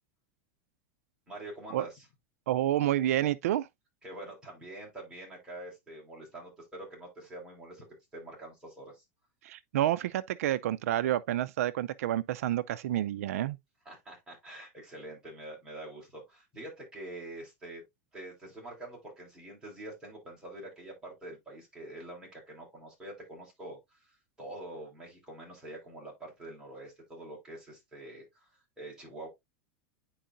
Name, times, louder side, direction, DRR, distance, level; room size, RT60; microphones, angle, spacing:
voice 1, 1.3-2.1 4.0-7.9 8.1-9.0 13.8-17.8 18.1-28.5 28.8-29.3, right 1 dB, 10° right, 4.4 m, -45 dB
voice 2, 2.5-3.7 9.4-13.6, right 13 dB, 90° right, 0.4 m, -29 dB
10.0 x 4.6 x 2.5 m
supercardioid pair, 150°, 8 cm